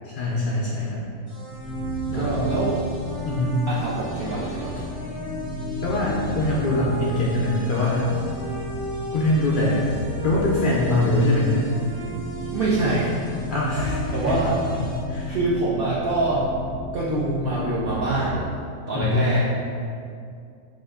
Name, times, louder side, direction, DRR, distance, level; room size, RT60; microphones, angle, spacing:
voice 1, 0.0-1.0 2.1-2.5 3.2-3.6 5.8-8.1 9.1-9.8 10.2-11.7 13.5-14.0 14.2-14.4 14.7-14.8 15.1-15.4 18.9-19.2, left 1 dB, 85° left, -6 dB, 0.4 m, -23 dB
sound 1, 1.3-15.0, equal, 55° right, 2.0 m, -36 dB
sound 2, 1.5-18.5, equal, 85° right, 1.8 m, -33 dB
voice 2, 2.1-2.8 3.7-4.8 12.5-13.1 14.1-14.6 15.3-16.5 16.9-18.5 18.9-19.4, right 2 dB, 70° right, -7 dB, 0.5 m, -25 dB
3.5 x 2.6 x 3.4 m, 2.4 s
omnidirectional pair, 1.4 m